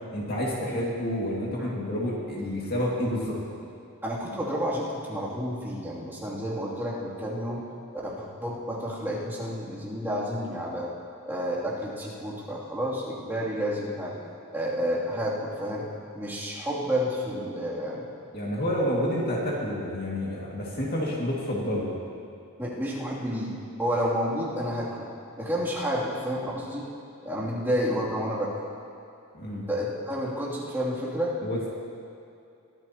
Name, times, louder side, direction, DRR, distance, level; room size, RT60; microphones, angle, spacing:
voice 1, 0.1-3.4 18.3-21.9 29.3-29.7 31.4-31.7, equal, 45° left, -4 dB, 2.4 m, -29 dB
voice 2, 4.0-7.6 8.0-10.9 11.2-14.1 14.5-15.9 16.1-18.1 22.6-25.1 25.4-26.9 27.2-28.5 29.5-31.4, equal, 10° right, -8 dB, 3.0 m, -30 dB
23.0 x 14.5 x 3.0 m, 2.6 s
head